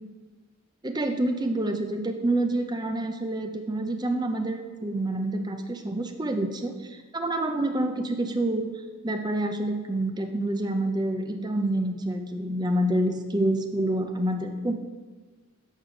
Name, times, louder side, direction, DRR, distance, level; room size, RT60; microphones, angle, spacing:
voice 1, 0.8-8.7 9.0-14.7, right 1 dB, 20° right, 5 dB, 0.5 m, -27 dB
7.4 x 4.8 x 4.9 m, 1.3 s
head